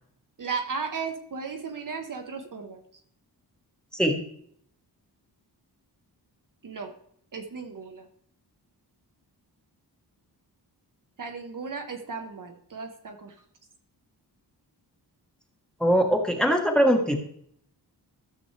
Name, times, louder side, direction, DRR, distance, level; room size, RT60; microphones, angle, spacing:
voice 1, 0.4-2.8 6.6-6.9 7.3-8.0 11.2-13.4, right 5 dB, 50° right, 4 dB, 1.1 m, -35 dB
voice 2, 15.8-17.2, equal, ahead, 3 dB, 1.1 m, -21 dB
13.5 x 6.9 x 3.3 m, 0.65 s
wide cardioid pair, 150°, 41 cm